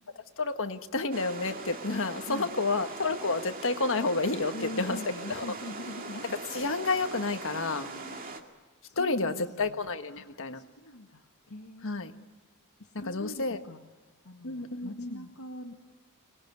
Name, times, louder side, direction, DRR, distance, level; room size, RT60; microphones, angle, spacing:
voice 1, 0.4-5.0 5.3-5.4 6.5-7.9 9.0-10.6 11.8-12.1 13.1-13.6 14.4-15.2, left 3 dB, 60° left, 7 dB, 1.5 m, -30 dB
sound 1, 1.1-8.4, right 3 dB, 40° right, 2.2 m, -41 dB
voice 2, 4.5-6.4 7.5-8.2 8.8-12.3 12.8-13.8 14.2-15.9, left 1 dB, 80° left, 0 dB, 1.9 m, -43 dB
26.0 x 20.5 x 9.5 m, 1.4 s
head